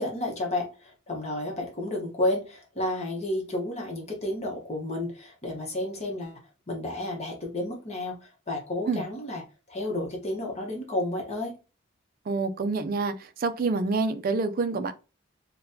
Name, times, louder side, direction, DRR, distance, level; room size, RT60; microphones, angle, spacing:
voice 1, 0.0-6.4 6.7-9.4 9.7-11.5, left 1 dB, 35° left, 0.9 m, -31 dB
voice 2, 12.3-13.1 13.4-14.9, right 3 dB, 45° right, 0.4 m, -27 dB
3.9 x 2.2 x 2.7 m
head